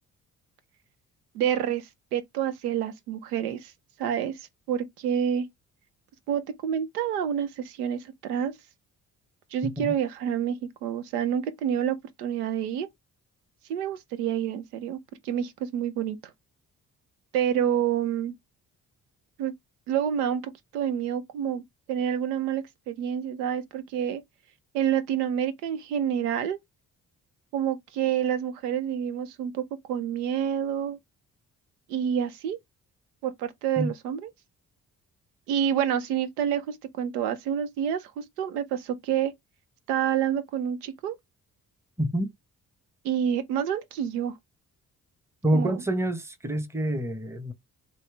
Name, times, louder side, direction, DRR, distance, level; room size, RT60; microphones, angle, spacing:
voice 1, 1.3-1.8 2.1-3.7 4.0-4.4 4.7-5.5 6.3-8.5 9.5-12.9 13.7-15.0 15.2-16.2 17.3-18.3 19.4-19.5 19.9-21.6 21.9-24.2 24.7-26.6 27.5-29.6 29.9-31.0 31.9-32.6 33.2-34.3 35.5-39.3 39.9-41.2 43.0-44.3 45.5-45.8, right 9 dB, 80° right, 0.6 m, -28 dB
voice 2, 9.6-9.9 33.8-33.9 42.0-42.3 45.4-47.5, right 1 dB, 5° right, 0.9 m, -27 dB
3.1 x 2.9 x 3.2 m
figure-of-eight pair, 40°, 45 cm